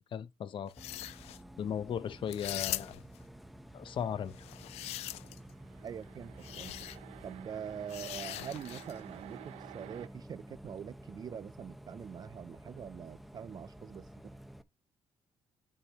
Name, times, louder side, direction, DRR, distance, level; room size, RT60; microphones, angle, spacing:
voice 1, 0.1-0.7 1.6-3.0 3.7-4.3, left 8 dB, 55° left, 0.7 m, -36 dB
sound 1, 0.7-1.4 2.3-3.2 4.3-5.5 6.4-7.0 7.9-9.0, left 14 dB, 90° left, 0.4 m, -41 dB
Bus, 0.8-14.6, right 1 dB, ahead, 0.7 m, -51 dB
sound 2, 5.3-10.1, right 13 dB, 90° right, 0.6 m, -52 dB
voice 2, 5.8-6.7 7.2-14.1, right 8 dB, 40° right, 0.4 m, -44 dB
8.8 x 7.2 x 3.0 m
cardioid pair, 115°, 10 cm